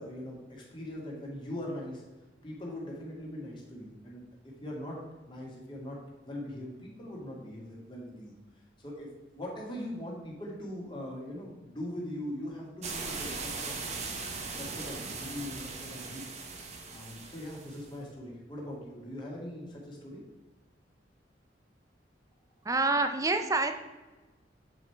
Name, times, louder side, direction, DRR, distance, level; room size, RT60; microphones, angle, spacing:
voice 1, 0.0-2.0 2.4-4.2 4.6-5.0 5.3-8.3 8.8-13.8 14.6-16.3 16.9-20.2, left 1 dB, 25° left, -2 dB, 2.0 m, -41 dB
sound 1, 12.8-17.9, right 4 dB, 35° right, 1.0 m, -39 dB
voice 2, 22.6-23.7, right 3 dB, 20° right, 8 dB, 0.5 m, -27 dB
8.1 x 5.2 x 4.6 m, 1.2 s
head